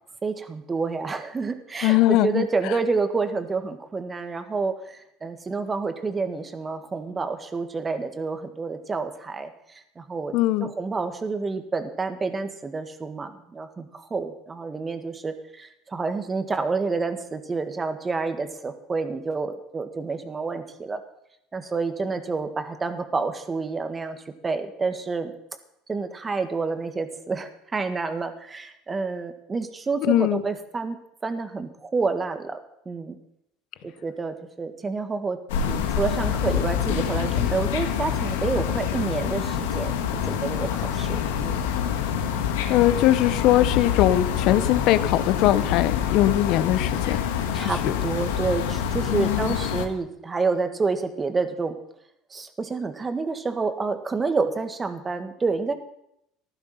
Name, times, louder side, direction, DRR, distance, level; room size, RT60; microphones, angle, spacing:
voice 1, 0.2-21.0 21.5-25.3 25.9-32.6 32.9-33.2 33.8-39.9 40.2-41.7 47.5-51.8 52.3-55.7, right 4 dB, 25° right, 8 dB, 1.8 m, -29 dB
voice 2, 1.8-2.4 10.3-10.7 30.1-30.4 42.7-47.2 47.5-47.9 49.1-49.6, left 14 dB, 65° left, 15 dB, 0.9 m, -21 dB
sound 1, 35.5-49.9, left 8 dB, 85° left, 1.5 m, -26 dB
15.0 x 11.5 x 5.8 m, 0.79 s
supercardioid pair, 90°, 0 cm